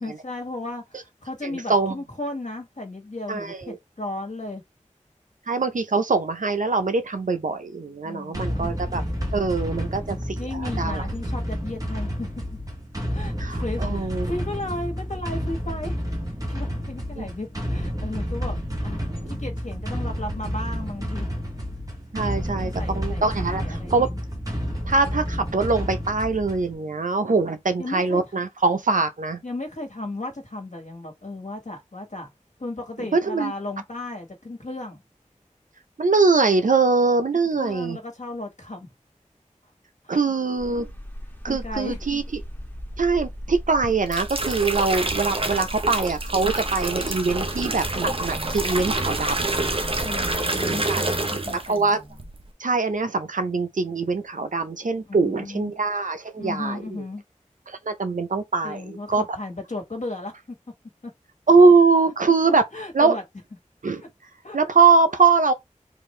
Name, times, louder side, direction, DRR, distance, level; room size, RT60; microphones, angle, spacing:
voice 1, 0.0-4.6 8.0-8.8 10.4-12.6 13.1-16.0 16.5-18.6 18.8-19.0 19.3-21.3 22.6-24.2 27.8-28.3 29.4-32.3 32.6-35.0 37.3-38.9 40.0-40.3 41.5-42.0 50.0-52.2 55.0-55.7 56.4-57.2 58.6-60.3 61.0-61.1 62.7-63.2 64.4-64.6, left 2 dB, 70° left, 1.6 m, -35 dB
voice 2, 1.4-1.9 3.3-3.8 5.5-9.0 9.3-11.0 13.4-14.3 17.2-17.3 22.1-24.1 24.9-29.4 33.1-33.5 36.0-38.0 40.1-40.9 41.4-42.2 43.0-49.5 50.7-51.1 51.5-52.0 52.6-56.8 57.7-59.2 61.5-62.6 62.9-63.2 63.8-64.0 64.5-65.5, right 4 dB, 85° right, 0.6 m, -22 dB
sound 1, 8.3-26.8, equal, 25° right, 1.4 m, -30 dB
sound 2, 40.6-50.3, equal, 15° left, 1.4 m, -37 dB
sound 3, 43.8-51.8 52.1-52.5, right 2 dB, 45° right, 0.8 m, -27 dB
3.9 x 2.6 x 3.2 m
wide cardioid pair, 50°, 13 cm